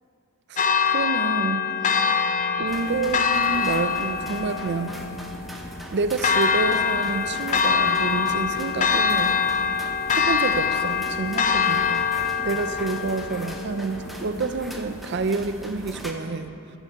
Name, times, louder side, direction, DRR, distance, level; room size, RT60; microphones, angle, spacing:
Church bell, 0.6-14.6, left 6 dB, 35° left, 0.4 m, -24 dB
voice 1, 0.9-1.7 2.6-5.0 5.9-9.4 10.1-12.1 12.4-16.6, right 3 dB, 50° right, 11 dB, 0.5 m, -28 dB
sound 1, 2.7-16.1, equal, ahead, 0.7 m, -40 dB
13.0 x 5.4 x 7.2 m, 2.7 s
head